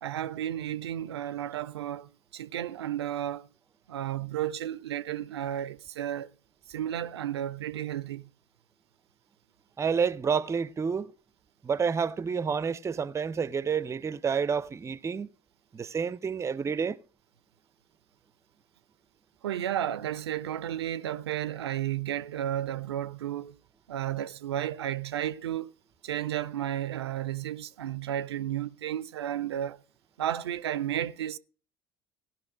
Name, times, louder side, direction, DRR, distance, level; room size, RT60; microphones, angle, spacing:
voice 1, 0.0-3.5 3.9-6.3 6.7-8.3 19.4-23.5 23.9-25.7 26.0-29.8 30.2-31.4, right 11 dB, 80° right, 0.4 m, -33 dB
voice 2, 9.8-11.1 11.6-15.3 15.7-17.0, right 6 dB, 20° right, 0.5 m, -29 dB
16.5 x 5.7 x 6.1 m
figure-of-eight pair, 65°, 14 cm